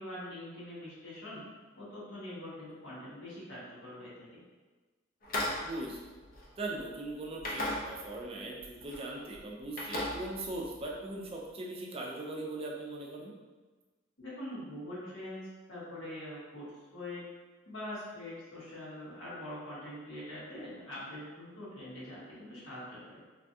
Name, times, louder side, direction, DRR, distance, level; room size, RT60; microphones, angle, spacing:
voice 1, 0.0-1.4 1.8-4.4 14.2-17.2 17.7-23.2, left 1 dB, 80° left, -9 dB, 1.3 m, -43 dB
sound 1, 5.2-6.9 7.4-8.3 8.6-9.0 9.3-10.9, left 1 dB, 45° left, 0.6 m, -37 dB
voice 2, 5.6-6.1 6.6-13.3, right 2 dB, 30° right, -2 dB, 0.4 m, -40 dB
3.2 x 2.3 x 2.6 m, 1.3 s
head